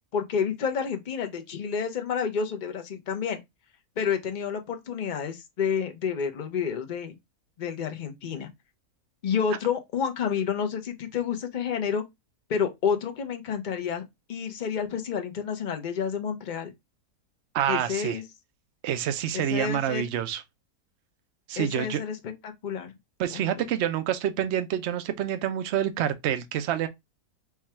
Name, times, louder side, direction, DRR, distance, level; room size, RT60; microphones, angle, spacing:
voice 1, 0.1-3.4 4.0-7.1 7.6-8.5 9.2-12.0 12.5-14.0 14.3-16.7 17.7-18.2 19.3-20.1 21.6-22.9 23.3-23.7, left 7 dB, 45° left, 0.6 m, -29 dB
voice 2, 17.5-18.2 18.8-20.4 21.5-22.0 23.2-26.9, right 10 dB, 60° right, 0.8 m, -27 dB
4.7 x 2.3 x 4.3 m
omnidirectional pair, 1.6 m